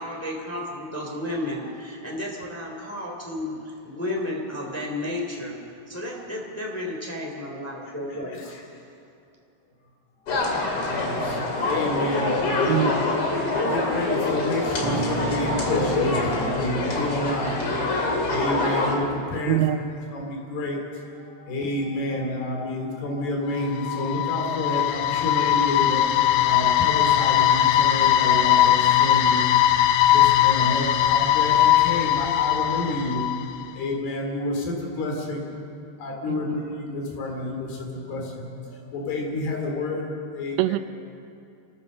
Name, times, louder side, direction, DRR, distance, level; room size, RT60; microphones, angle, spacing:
voice 1, 0.0-5.5 5.9-8.4, left 1 dB, 5° left, -1 dB, 1.6 m, -32 dB
voice 2, 7.9-8.6 10.9-19.7 20.1-20.8 21.2-33.4 33.7-35.5 36.0-40.0 40.3-40.8, left 2 dB, 55° left, 0 dB, 4.5 m, -29 dB
sound 1, 10.3-19.0, left 2 dB, 40° left, 2.4 m, -25 dB
voice 3, 11.2-11.5 12.7-13.1 19.5-19.8 36.3-36.6 40.6-40.8, right 13 dB, 85° right, 11 dB, 3.3 m, -25 dB
Bass guitar, 14.8-18.9, right 3 dB, 55° right, 2.6 m, -35 dB
sound 2, 23.6-33.6, left 12 dB, 90° left, 3.3 m, -20 dB
26.0 x 15.0 x 6.5 m, 2.5 s
omnidirectional pair, 5.7 m